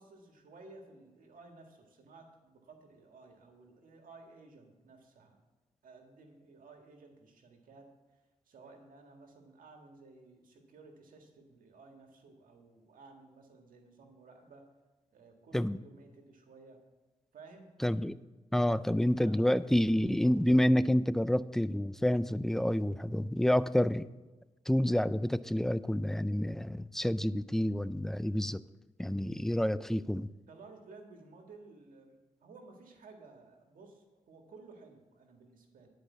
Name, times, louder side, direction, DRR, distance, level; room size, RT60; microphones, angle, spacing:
voice 1, 0.0-5.4 5.8-8.2 8.4-14.7 15.1-16.8 17.3-17.7 18.7-18.8 19.2-19.5 30.5-35.9, right 3 dB, 75° right, 3 dB, 1.7 m, -55 dB
voice 2, 17.8-18.2 18.5-24.1 24.7-28.6 29.0-30.3, equal, 5° left, 16 dB, 0.4 m, -28 dB
10.5 x 5.0 x 8.1 m, 1.2 s
cardioid pair, 65°, 14 cm